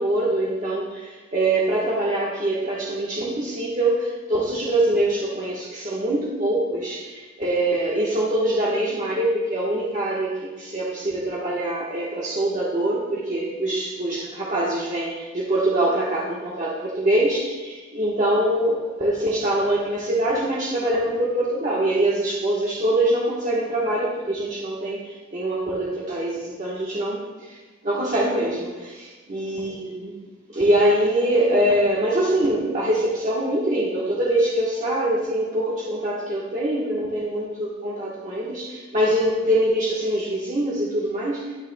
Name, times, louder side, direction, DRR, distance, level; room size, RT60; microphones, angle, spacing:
voice 1, 0.0-27.6 27.8-30.1 30.5-41.5, right 1 dB, 40° right, -6 dB, 1.3 m, -24 dB
19.5 x 6.7 x 2.3 m, 1.3 s
head